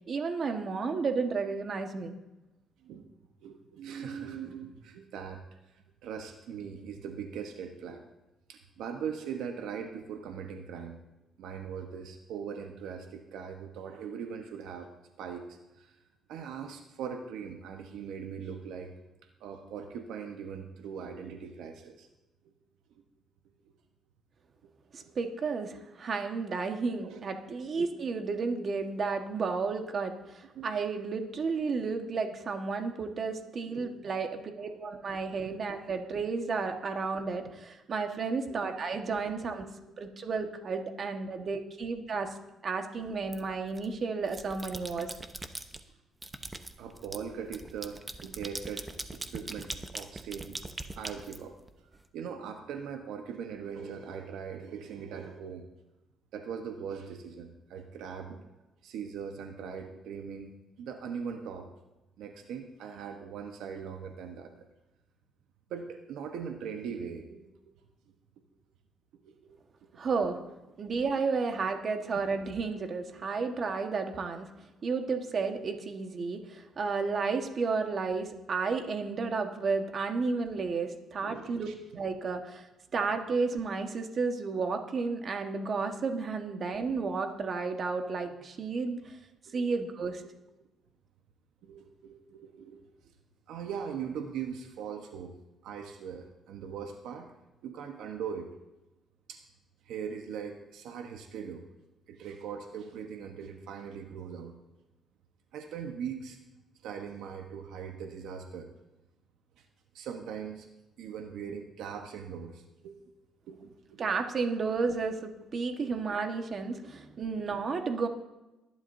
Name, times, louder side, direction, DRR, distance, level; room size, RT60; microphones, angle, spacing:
voice 1, 0.1-2.2 24.9-39.7 40.0-42.3 42.6-45.1 70.0-70.4 70.8-74.5 74.8-81.7 81.9-82.7 82.9-89.0 89.5-90.2 114.0-118.1, right 4 dB, 50° right, 5 dB, 1.4 m, -32 dB
voice 2, 3.4-5.4 6.0-8.0 8.5-11.0 11.4-14.9 15.2-15.9 16.3-18.9 19.4-22.1 25.0-25.1 27.0-27.9 30.5-30.8 31.6-31.7 33.7-33.9 34.4-34.8 35.4-35.6 38.5-38.7 41.3-41.5 41.8-41.9 46.8-50.6 50.9-51.5 52.1-55.7 56.3-58.5 58.8-61.7 62.2-64.5 65.7-67.5 69.2-69.6 71.7-71.8 72.1-72.2 81.2-81.7 89.5-89.7 91.6-93.1 93.5-95.3 95.6-97.3 97.6-98.5 99.3-99.4 99.8-101.6 102.1-104.6 105.5-106.4 106.8-108.7 109.9-110.7 111.0-113.0 113.5-114.1 115.8-115.9 116.7-116.8, right 7 dB, 85° right, 4 dB, 1.1 m, -40 dB
sound 1, 43.3-43.9 44.2-45.8 46.2-52.0, right 2 dB, 20° right, 0.9 m, -41 dB
21.0 x 11.0 x 2.7 m, 1.0 s
cardioid pair, 90°, 0 cm